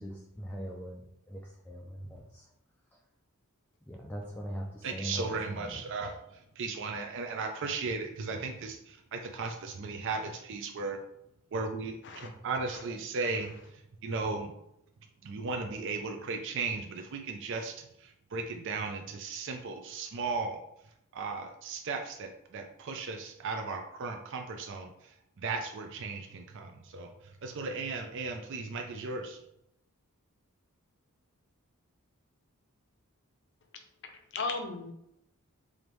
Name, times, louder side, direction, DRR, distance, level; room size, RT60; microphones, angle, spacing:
voice 1, 0.0-2.5 2.9-3.0 3.9-5.9, equal, 10° left, -2 dB, 0.4 m, -41 dB
voice 2, 4.8-6.1 6.6-8.8 9.1-11.0 11.5-12.0 12.2-13.5 14.0-14.5 15.2-17.7 18.3-20.6 21.1-24.9 25.4-27.1 27.4-29.4, right 4 dB, 60° right, 4 dB, 0.4 m, -36 dB
voice 3, 13.2-13.6 34.0-34.9, left 3 dB, 55° left, 4 dB, 0.6 m, -37 dB
4.9 x 2.6 x 3.1 m, 0.79 s
head